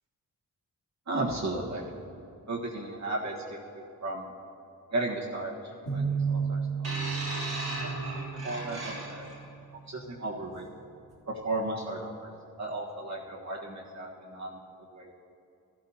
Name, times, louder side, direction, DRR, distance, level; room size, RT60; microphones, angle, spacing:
voice 1, 1.1-1.8 2.5-4.3 4.9-6.9 7.8-9.3 9.9-10.7 11.3-12.3 12.6-14.6 14.9-15.1, right 2 dB, 50° right, -3 dB, 1.5 m, -35 dB
sound 1, 5.9-9.5, right 6 dB, 80° left, 2.7 m, -33 dB
sound 2, 6.8-9.4 10.3-10.5, right 1 dB, 85° right, 2.1 m, -36 dB
13.5 x 12.0 x 2.8 m, 2.5 s
cardioid pair, 70°, 36 cm